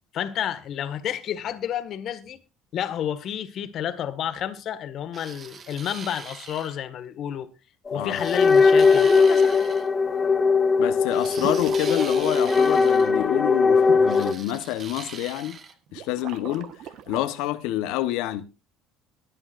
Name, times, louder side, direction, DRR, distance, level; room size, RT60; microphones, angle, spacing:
voice 1, 0.1-2.4 2.7-7.5 7.9-9.7, left 10 dB, 55° left, 1.7 m, -30 dB
sound 1, 5.1-6.8 8.1-9.9 11.1-13.1 14.1-15.7, right 6 dB, 40° right, 1.7 m, -41 dB
voice 2, 7.9-8.3 10.8-15.6 15.9-16.7 17.1-18.5, left 14 dB, 80° left, 1.1 m, -28 dB
sound 2, 7.9-14.3, left 4 dB, 25° left, 2.0 m, -20 dB
sound 3, 11.4-13.2 15.9-17.2, right 10 dB, 65° right, 1.3 m, -39 dB
23.0 x 8.8 x 2.6 m
supercardioid pair, 95°, 0 cm